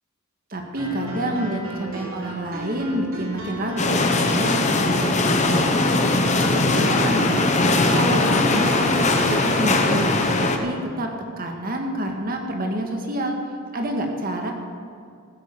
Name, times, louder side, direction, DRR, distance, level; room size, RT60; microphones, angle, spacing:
voice 1, 0.5-6.1 6.4-7.4 7.9-10.0 10.4-11.1 11.4-13.4 13.7-14.5, right 1 dB, 45° right, 3 dB, 1.7 m, -28 dB
sound 1, 0.8-10.4, equal, 65° right, 3.7 m, -34 dB
sound 2, 3.8-10.6, left 2 dB, 35° left, 1.0 m, -20 dB
15.5 x 7.7 x 7.1 m, 2.2 s
head